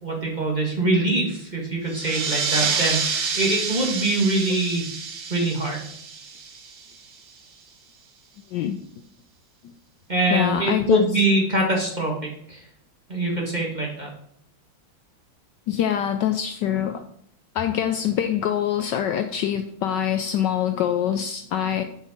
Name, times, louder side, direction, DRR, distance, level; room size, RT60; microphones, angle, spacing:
voice 1, 0.0-4.9 5.3-5.9 10.1-12.6 13.1-14.1, right 2 dB, 25° right, -1 dB, 1.5 m, -23 dB
sound 1, 1.9-7.1, right 5 dB, 70° right, 1.7 m, -28 dB
voice 2, 10.3-11.0 15.7-17.0 17.5-21.8, left 10 dB, 75° left, 7 dB, 1.1 m, -24 dB
5.6 x 5.1 x 6.4 m, 0.67 s
omnidirectional pair, 2.2 m